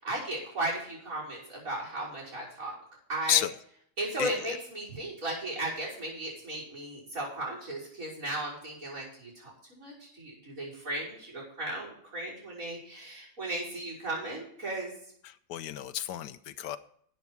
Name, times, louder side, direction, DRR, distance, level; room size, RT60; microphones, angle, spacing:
voice 1, 0.0-2.8 3.1-3.4 4.0-14.9, right 1 dB, 55° right, -4 dB, 6.1 m, -36 dB
voice 2, 4.2-4.6 15.2-16.8, left 11 dB, 90° left, 12 dB, 1.3 m, -31 dB
12.5 x 8.3 x 4.7 m, 0.64 s
omnidirectional pair, 1.8 m